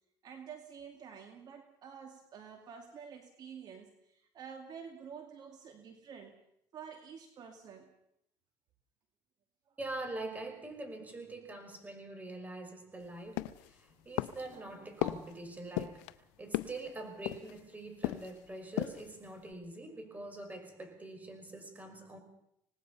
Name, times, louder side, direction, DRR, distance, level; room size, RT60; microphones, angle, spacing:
voice 1, 0.2-6.4 6.7-7.9 9.7-9.8, right 7 dB, 50° right, 5 dB, 2.3 m, -49 dB
voice 2, 9.8-22.2, right 2 dB, 20° right, 5 dB, 5.6 m, -44 dB
sound 1, 13.4-13.8 14.2-14.6 15.0-15.3 15.8-16.1 16.5-16.9 17.3-17.6 18.0-18.4 18.7-19.1 19.5-19.6, left 18 dB, 90° left, 0.7 m, -36 dB
25.5 x 19.0 x 5.6 m, 0.77 s
supercardioid pair, 95°, 9 cm